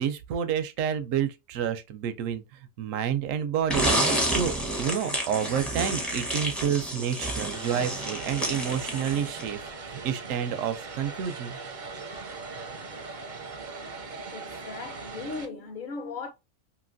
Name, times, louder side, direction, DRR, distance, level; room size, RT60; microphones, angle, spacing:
voice 1, 0.0-2.4 2.8-3.9 4.2-11.6, right 8 dB, 80° right, 0.9 m, -29 dB
sound 1, 3.7-9.6, right 1 dB, ahead, 0.6 m, -29 dB
Vehicle, 7.5-15.5, right 4 dB, 50° right, 0.6 m, -40 dB
voice 2, 14.3-16.3, left 4 dB, 50° left, 0.7 m, -37 dB
3.0 x 2.7 x 2.5 m
omnidirectional pair, 1.4 m